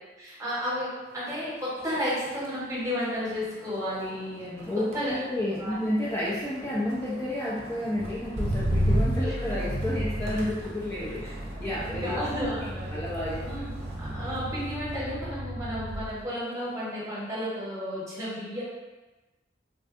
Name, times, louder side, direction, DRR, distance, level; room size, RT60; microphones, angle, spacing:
voice 1, 0.2-4.7 4.9-5.1 5.6-5.7 6.7-6.8 9.2-9.3 11.5-13.1 13.4-18.6, equal, 15° right, -8 dB, 0.9 m, -33 dB
Motor vehicle (road), 1.1-1.5 1.8-16.2 16.6-17.1, equal, 40° right, 0.6 m, -33 dB
voice 2, 4.7-12.2 12.9-13.5, left 1 dB, 15° left, -9 dB, 0.4 m, -31 dB
3.5 x 2.2 x 2.5 m, 1.1 s
head